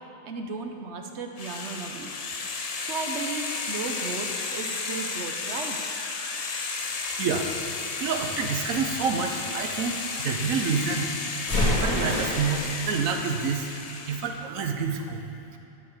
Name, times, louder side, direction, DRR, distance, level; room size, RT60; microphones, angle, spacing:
voice 1, 0.2-2.1 2.4-2.5 2.8-5.8, right 4 dB, 60° right, 4 dB, 1.0 m, -35 dB
sound 1, 1.4-14.4, left 4 dB, 45° left, 0.5 m, -33 dB
voice 2, 8.0-11.1 11.7-13.7 14.1-15.2 15.5-15.6, right 5 dB, 75° right, 4 dB, 1.3 m, -28 dB
sound 2, 8.1-10.0 11.5-12.8, left 1 dB, 75° left, 3.0 m, -28 dB
12.5 x 5.1 x 6.6 m, 2.9 s
omnidirectional pair, 1.4 m